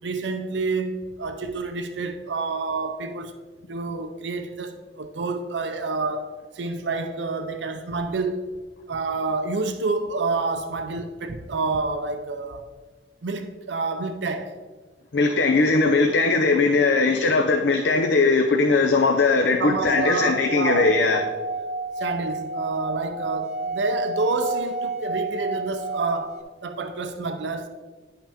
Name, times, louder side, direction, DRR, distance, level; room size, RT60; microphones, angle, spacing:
voice 1, 0.0-3.3 3.7-8.5 8.9-12.7 13.2-14.6 19.6-21.0 22.0-27.7, right 3 dB, 85° right, 0.6 m, -28 dB
voice 2, 15.1-21.2, left 3 dB, 80° left, 0.5 m, -20 dB
Singing / Glass, 19.8-26.4, right 3 dB, 40° right, 0.6 m, -31 dB
9.7 x 5.7 x 3.5 m
head